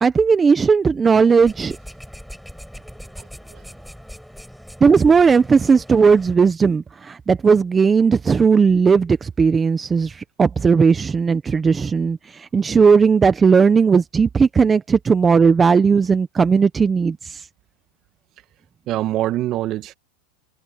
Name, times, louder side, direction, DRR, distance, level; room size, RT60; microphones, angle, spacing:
voice 1, 0.0-1.8 4.8-17.5, right 5 dB, 20° right, 1.1 m, -16 dB
sound 1, 1.4-6.4, equal, ahead, 6.8 m, -40 dB
voice 2, 3.2-3.6 18.9-19.9, right 14 dB, 40° right, 1.8 m, -25 dB
supercardioid pair, 120°, 0 cm